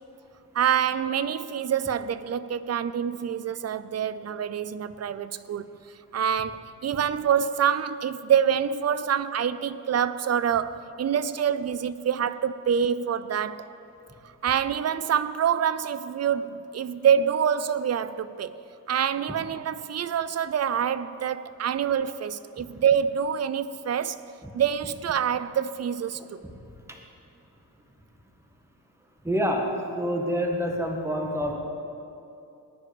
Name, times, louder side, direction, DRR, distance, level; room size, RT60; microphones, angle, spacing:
voice 1, 0.5-5.6 6.1-13.7 14.4-18.5 18.9-24.2 24.5-26.4, right 8 dB, 45° right, 0.6 m, -26 dB
voice 2, 29.2-29.7 30.0-31.5, equal, 5° right, 1.7 m, -27 dB
18.5 x 9.9 x 5.2 m
cardioid pair, 85°, 36 cm